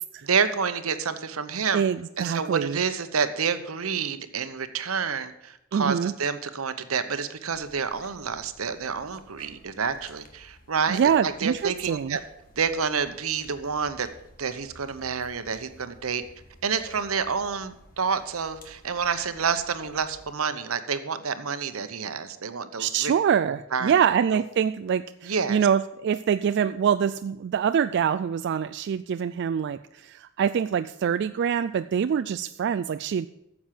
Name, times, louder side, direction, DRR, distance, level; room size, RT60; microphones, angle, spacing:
voice 1, 0.2-1.8 2.2-12.2 12.6-14.1 14.4-16.2 16.6-23.1 23.7-23.9 24.3-24.4 25.2-25.6, right 6 dB, 85° right, 10 dB, 0.9 m, -28 dB
voice 2, 1.7-2.8 5.7-6.1 10.9-12.2 22.8-33.3, right 7 dB, 55° right, 11 dB, 0.3 m, -25 dB
sound 1, 7.5-20.3, left 1 dB, 40° left, 1.6 m, -53 dB
9.8 x 7.2 x 7.5 m, 0.84 s
head